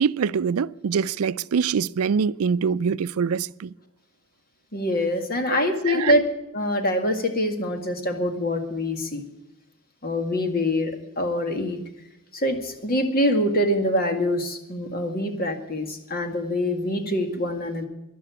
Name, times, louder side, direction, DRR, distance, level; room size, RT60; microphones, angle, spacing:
voice 1, 0.0-3.7 5.5-6.1, right 6 dB, 90° right, 0.4 m, -24 dB
voice 2, 4.7-9.2 10.0-11.8 12.3-17.8, left 1 dB, 45° left, 1.9 m, -25 dB
12.0 x 11.5 x 8.4 m
head